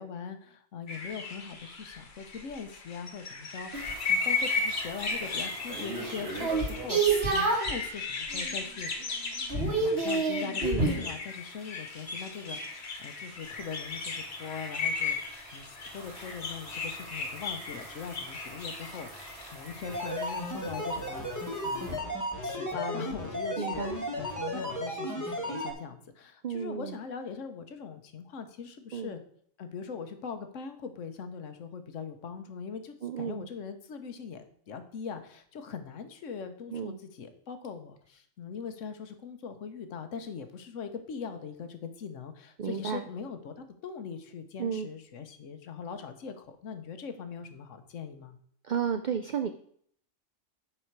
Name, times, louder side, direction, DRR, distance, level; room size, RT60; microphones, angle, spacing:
voice 1, 0.0-8.9 9.8-22.0 22.4-29.2 29.6-48.4, left 6 dB, 70° left, 8 dB, 1.2 m, -41 dB
Birds Chirping, 0.9-20.4, left 4 dB, 55° left, 1.5 m, -36 dB
sound 1, 3.7-7.8 8.3-8.7 9.0-11.1 13.6-22.0, right 3 dB, 50° right, 2.0 m, -33 dB
sound 2, 19.8-25.7, equal, 15° left, 1.2 m, -34 dB
voice 2, 23.6-24.0 26.4-27.0 28.9-29.1 33.0-33.5 36.7-37.0 42.6-43.1 44.6-44.9 48.6-49.5, right 7 dB, 85° right, 8 dB, 0.4 m, -33 dB
9.0 x 5.4 x 4.6 m, 0.63 s
omnidirectional pair, 1.4 m